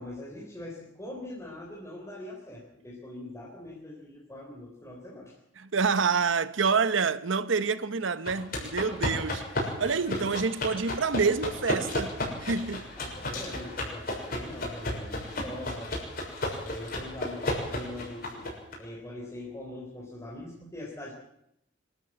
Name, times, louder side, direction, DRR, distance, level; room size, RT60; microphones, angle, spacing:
voice 1, 0.0-5.4 13.0-15.9 16.5-18.5 18.8-21.1, left 1 dB, 15° left, 3.9 m, -42 dB
voice 2, 5.6-12.1 12.4-12.9, right 5 dB, 70° right, 0.9 m, -27 dB
sound 1, 8.3-18.7, left 1 dB, 50° left, 6.8 m, -34 dB
25.0 x 13.5 x 7.9 m
head